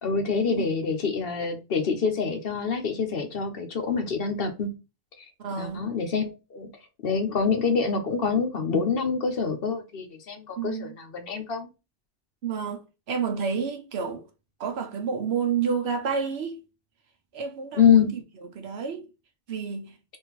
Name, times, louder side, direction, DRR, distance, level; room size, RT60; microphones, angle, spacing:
voice 1, 0.0-4.7 5.2-5.3 5.6-6.7 7.0-11.7 17.8-18.1, left 6 dB, 60° left, 0.8 m, -25 dB
voice 2, 5.4-5.9 10.6-11.0 12.4-14.2 14.6-16.6 17.3-18.2 18.5-19.1 19.5-19.9, right 6 dB, 65° right, 0.9 m, -30 dB
3.6 x 2.5 x 2.9 m
omnidirectional pair, 1.2 m